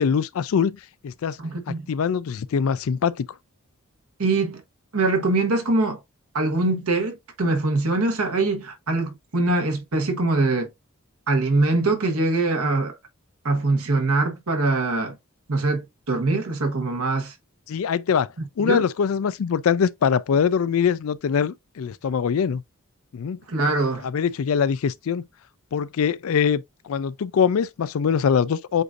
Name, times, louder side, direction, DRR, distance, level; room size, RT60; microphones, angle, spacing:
voice 1, 0.0-1.4 1.7-3.3 17.7-18.3 18.6-22.6 23.1-23.4 24.0-25.2 25.7-28.8, left 7 dB, 70° left, 0.4 m, -23 dB
voice 2, 1.4-1.9 4.2-4.6 4.9-6.0 6.3-10.7 11.3-12.9 13.4-15.1 15.5-17.3 18.6-18.8 23.5-24.1, right 2 dB, 80° right, 1.3 m, -23 dB
7.9 x 2.6 x 2.4 m
head